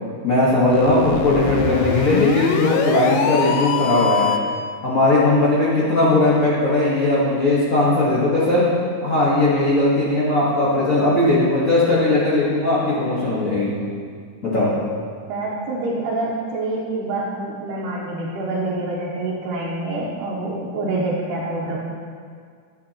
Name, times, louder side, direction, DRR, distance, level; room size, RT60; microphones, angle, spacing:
voice 1, 0.2-4.3 4.8-8.7 9.0-13.7 14.4-14.7, left 2 dB, 65° left, -8 dB, 0.8 m, -18 dB
sound 1, 0.6-4.6, left 7 dB, 90° left, 1.6 m, -23 dB
voice 2, 15.3-21.8, right 2 dB, 80° right, -5 dB, 2.3 m, -26 dB
10.5 x 8.8 x 2.9 m, 2.1 s
omnidirectional pair, 3.7 m